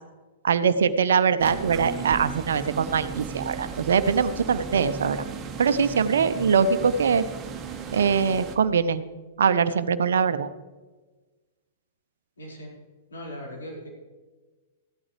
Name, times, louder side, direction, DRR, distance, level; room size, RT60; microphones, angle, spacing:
voice 1, 0.4-5.2 5.6-7.2 7.9-9.0 9.4-10.5, right 6 dB, 65° right, 13 dB, 0.6 m, -22 dB
sound 1, 1.4-8.6, right 6 dB, 20° right, 1.3 m, -36 dB
voice 2, 12.4-12.7 13.1-13.9, equal, 75° left, -4 dB, 4.8 m, -38 dB
15.5 x 12.5 x 3.3 m, 1.3 s
figure-of-eight pair, 100°, 0 cm